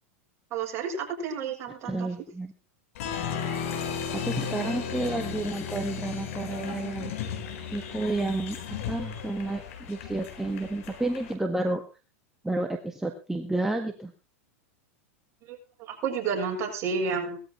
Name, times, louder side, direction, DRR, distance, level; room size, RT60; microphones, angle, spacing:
voice 1, 0.5-2.1 15.4-17.4, right 5 dB, 40° right, 1 dB, 7.2 m, -31 dB
voice 2, 1.8-2.5 4.1-7.1 7.7-8.6 8.9-11.8 12.4-14.1, right 2 dB, 5° right, 4 dB, 1.6 m, -30 dB
Applause, 2.9-11.3, left 7 dB, 65° left, 4.5 m, -35 dB
18.5 x 14.0 x 3.2 m, 0.31 s
hypercardioid pair, 110°, 8 cm